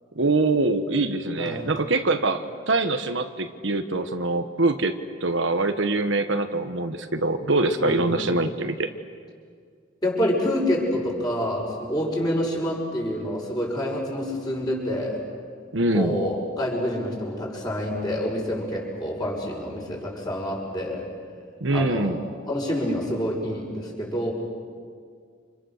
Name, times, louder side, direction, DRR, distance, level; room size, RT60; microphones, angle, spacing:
voice 1, 0.1-4.9 5.2-8.9 15.7-16.1 21.6-22.2, right 2 dB, 70° right, 7 dB, 1.3 m, -24 dB
voice 2, 1.4-1.7 7.8-8.3 10.0-15.2 15.9-21.1 21.7-22.2 22.5-24.3, equal, 20° left, -2 dB, 6.2 m, -27 dB
29.5 x 28.0 x 6.6 m, 2.1 s
head